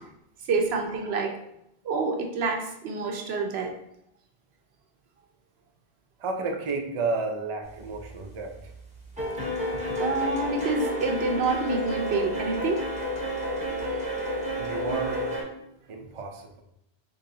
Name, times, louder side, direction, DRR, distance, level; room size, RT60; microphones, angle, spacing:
voice 1, 0.5-1.3 1.8-3.7 10.0-12.8, right 3 dB, 75° right, 3 dB, 0.9 m, -27 dB
voice 2, 6.2-8.7 9.2-9.3 14.6-15.3 15.9-16.6, right 3 dB, 45° right, 3 dB, 0.4 m, -32 dB
sound 1, 7.8-8.2 8.5-15.4, equal, 5° right, 0.9 m, -31 dB
3.9 x 3.1 x 2.7 m, 0.79 s
omnidirectional pair, 1.1 m